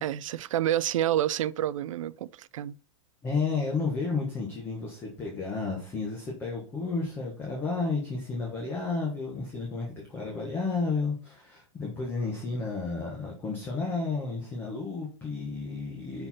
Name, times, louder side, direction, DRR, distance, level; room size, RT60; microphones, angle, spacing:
voice 1, 0.0-2.7, right 12 dB, 80° right, 0.5 m, -28 dB
voice 2, 3.2-16.3, left 4 dB, 10° left, 1.3 m, -32 dB
6.5 x 4.7 x 4.3 m
supercardioid pair, 180°, 16 cm